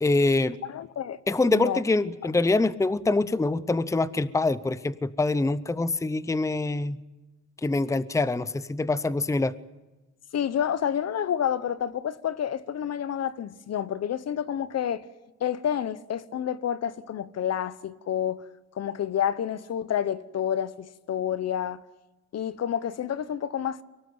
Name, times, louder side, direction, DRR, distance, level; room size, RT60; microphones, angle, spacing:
voice 1, 0.0-0.5 1.3-7.0 7.6-9.5, left 2 dB, 10° left, 0.7 m, -25 dB
voice 2, 0.7-1.2 1.5-1.8 10.3-15.0 15.4-18.4 18.8-21.8 22.3-23.8, left 9 dB, 55° left, 1.0 m, -29 dB
24.0 x 18.5 x 8.0 m
cardioid pair, 90°, 30 cm